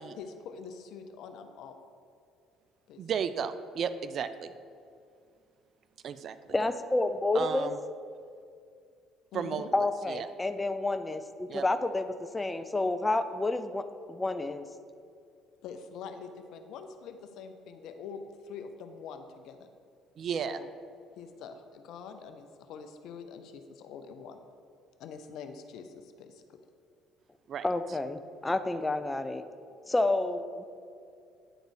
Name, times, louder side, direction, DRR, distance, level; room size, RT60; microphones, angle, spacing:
voice 1, 0.2-1.8 2.9-3.0 9.3-9.7 15.6-19.7 20.4-20.7 21.2-24.4 25.0-26.6, left 6 dB, 70° left, 7 dB, 0.6 m, -45 dB
voice 2, 3.0-4.5 6.0-6.4 7.3-7.8 9.3-9.6 10.1-10.3 11.5-11.7 20.2-20.6 27.5-27.6, right 7 dB, 55° right, 12 dB, 0.4 m, -33 dB
voice 3, 6.5-7.7 9.7-14.7 27.6-29.4 29.9-30.6, left 2 dB, 15° left, 10 dB, 0.5 m, -29 dB
9.9 x 3.9 x 4.7 m, 2.3 s
hypercardioid pair, 65°, 0 cm